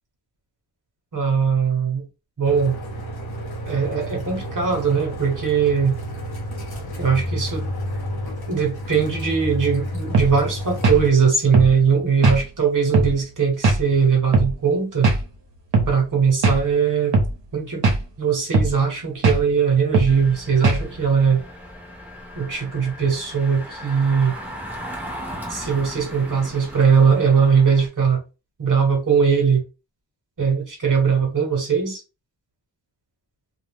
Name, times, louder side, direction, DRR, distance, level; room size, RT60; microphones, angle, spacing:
voice 1, 1.1-2.0 2.4-2.8 3.6-6.0 7.0-7.7 8.5-15.1 15.9-17.2 17.5-17.9 18.2-21.4 22.4-24.3 25.5-28.2 28.6-29.6 30.4-32.0, right 6 dB, 45° right, 1.2 m, -20 dB
sound 1, 2.4-11.1, equal, 55° left, 0.9 m, -30 dB
sound 2, 10.1-10.3 10.8-11.0 11.5-11.7 12.2-12.4 12.9-13.1 13.6-13.8 14.3-14.5 15.0-15.2 15.7-15.9 16.4-16.6 17.1-17.3 17.8-18.0 18.5-18.7 19.2-19.4 19.9-20.1 20.6-20.8, right 3 dB, 70° right, 0.9 m, -18 dB
Engine, 20.0-27.9, equal, 5° right, 0.9 m, -37 dB
2.4 x 2.0 x 3.6 m
wide cardioid pair, 110°, 45 cm